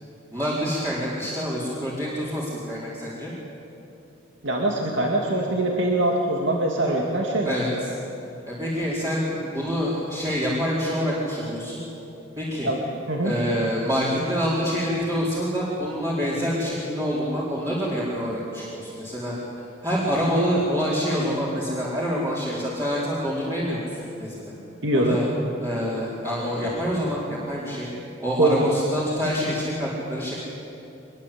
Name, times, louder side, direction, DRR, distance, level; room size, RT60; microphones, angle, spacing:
voice 1, 0.3-3.3 7.4-7.9 8.5-11.8 12.4-12.7 13.2-19.3 19.8-24.3 24.9-25.2 25.6-27.9 28.2-30.4, equal, 15° right, -7 dB, 4.5 m, -26 dB
voice 2, 4.4-7.5 12.6-12.8 13.1-13.3 24.8-25.2 28.4-28.7, right 1 dB, 70° right, 0 dB, 2.4 m, -23 dB
24.5 x 22.0 x 8.7 m, 2.9 s
head